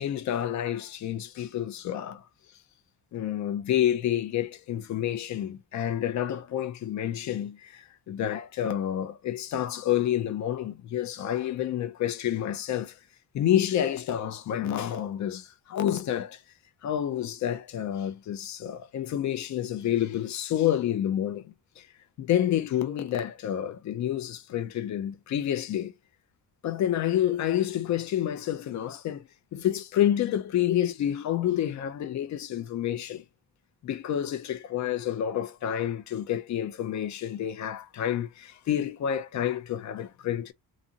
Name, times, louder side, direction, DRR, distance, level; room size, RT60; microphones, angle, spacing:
voice 1, 0.0-2.2 3.1-13.0 13.3-16.4 16.8-21.8 22.2-25.9 26.6-33.2 33.8-40.5, left 11 dB, 50° left, 0.5 m, -29 dB
2.6 x 2.5 x 2.7 m
cardioid pair, 150°, 36 cm